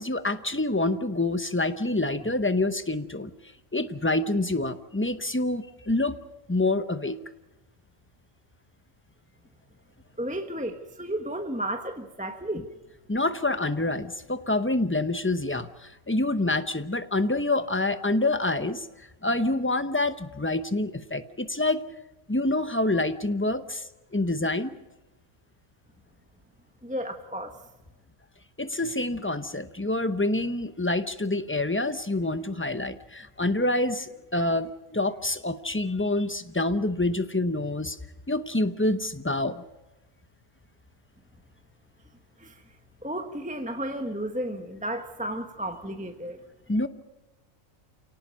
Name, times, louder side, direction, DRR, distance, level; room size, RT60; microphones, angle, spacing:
voice 1, 0.0-3.3 3.7-6.2 6.5-7.2 13.1-18.9 19.2-21.8 22.3-24.7 28.6-38.0 38.3-39.6 46.7-46.9, left 2 dB, 10° left, 11 dB, 0.7 m, -27 dB
voice 2, 10.2-12.7 26.8-27.6 42.4-42.6 43.0-46.4, right 1 dB, 5° right, 5 dB, 1.1 m, -33 dB
28.0 x 18.5 x 5.3 m, 1.0 s
omnidirectional pair, 1.4 m